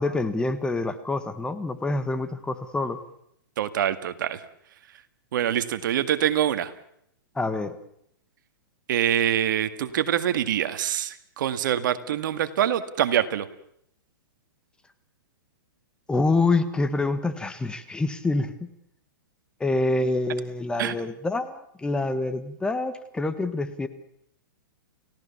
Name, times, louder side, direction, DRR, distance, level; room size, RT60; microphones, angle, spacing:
voice 1, 0.0-3.0 7.3-7.8 16.1-18.7 19.6-23.9, left 2 dB, 5° left, 10 dB, 1.5 m, -26 dB
voice 2, 3.6-4.4 5.3-6.7 8.9-13.5 20.8-20.9, right 10 dB, 60° right, 11 dB, 2.0 m, -25 dB
30.0 x 17.5 x 7.2 m, 0.74 s
hypercardioid pair, 140°, 12 cm